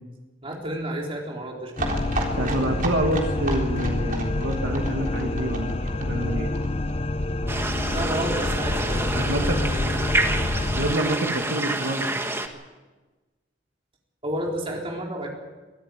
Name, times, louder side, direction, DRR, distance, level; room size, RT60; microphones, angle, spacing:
voice 1, 0.4-1.9 7.9-10.0 14.2-15.3, right 1 dB, 30° right, -1 dB, 4.2 m, -31 dB
sound 1, 1.7-7.3 7.6-7.7 7.9-8.0 8.2-8.3, right 3 dB, 45° right, 3.7 m, -33 dB
sound 2, 1.8-11.0, left 2 dB, 30° left, 0.7 m, -27 dB
voice 2, 2.3-6.5 9.1-9.6 10.7-12.1, right 1 dB, 80° right, 3 dB, 2.3 m, -27 dB
sound 3, 7.5-12.5, right 2 dB, 15° right, 1.6 m, -28 dB
24.0 x 13.5 x 9.2 m, 1.2 s
head